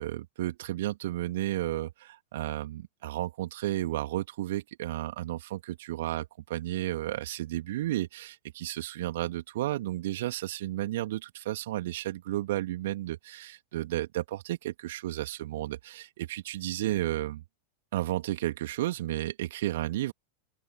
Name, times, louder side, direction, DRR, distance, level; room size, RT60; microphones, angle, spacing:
voice 1, 0.0-17.4 17.9-20.1, right 15 dB, 55° right, 2.9 m, -33 dB
open air
figure-of-eight pair, 90°, 0 cm